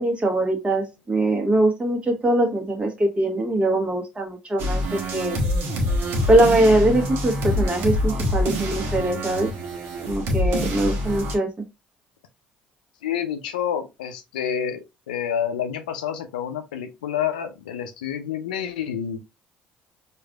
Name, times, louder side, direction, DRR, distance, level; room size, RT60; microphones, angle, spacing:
voice 1, 0.0-5.4 6.3-9.5 10.1-11.5, right 1 dB, 25° right, 1.2 m, -22 dB
sound 1, 4.6-11.3, left 1 dB, 65° right, 0.9 m, -25 dB
voice 2, 13.0-19.2, left 9 dB, 85° left, 0.5 m, -28 dB
4.6 x 2.5 x 2.3 m
hypercardioid pair, 60°, 5 cm